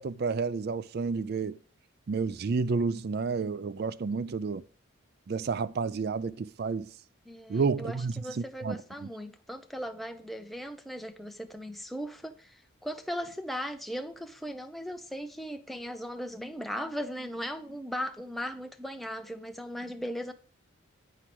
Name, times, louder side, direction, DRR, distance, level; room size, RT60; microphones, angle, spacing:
voice 1, 0.0-1.6 2.1-4.6 5.3-6.9 7.5-8.8, right 4 dB, 45° right, 0.4 m, -30 dB
voice 2, 7.3-20.3, equal, ahead, 0.7 m, -38 dB
9.9 x 4.7 x 6.0 m
head